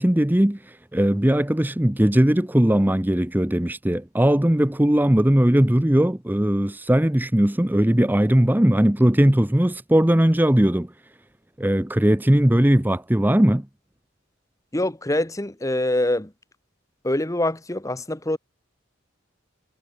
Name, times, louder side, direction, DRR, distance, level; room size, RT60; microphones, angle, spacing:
voice 1, 0.0-10.9 11.6-13.6, right 1 dB, 10° right, 0.7 m, -19 dB
voice 2, 14.7-16.3 17.0-18.4, left 1 dB, 15° left, 1.1 m, -24 dB
head